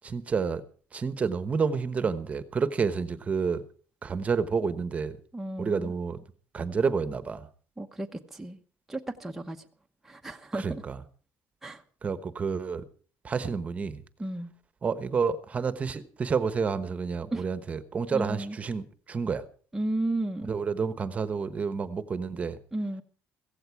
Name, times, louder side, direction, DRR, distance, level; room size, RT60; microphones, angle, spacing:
voice 1, 0.0-0.6 0.9-3.6 4.0-5.2 5.6-6.2 6.5-7.5 10.5-11.0 12.0-12.8 13.2-14.0 14.8-19.5 20.5-22.6, right 5 dB, 25° right, 13 dB, 1.1 m, -29 dB
voice 2, 5.3-5.9 7.8-8.6 8.9-9.6 10.0-10.8 11.6-11.8 14.2-14.5 17.3-17.4 18.1-18.6 19.7-20.6 22.7-23.0, right 2 dB, 5° right, 2 dB, 1.0 m, -33 dB
16.0 x 15.5 x 4.7 m, 0.43 s
cardioid pair, 150°, 5 cm